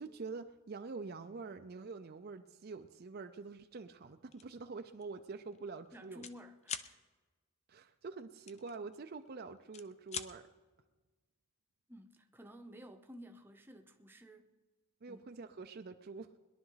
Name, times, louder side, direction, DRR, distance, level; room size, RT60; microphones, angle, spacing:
voice 1, 0.0-6.3 7.7-10.4 15.0-16.3, right 4 dB, 45° right, 0.5 m, -46 dB
sound 1, 4.3-4.6 5.0-5.2 5.4-6.4 6.6-6.9 8.5-9.3 9.6-10.3, left 8 dB, 30° left, 0.5 m, -43 dB
voice 2, 5.9-7.0 11.9-14.5 15.1-15.2, equal, 10° right, 0.8 m, -53 dB
21.5 x 11.0 x 3.9 m
head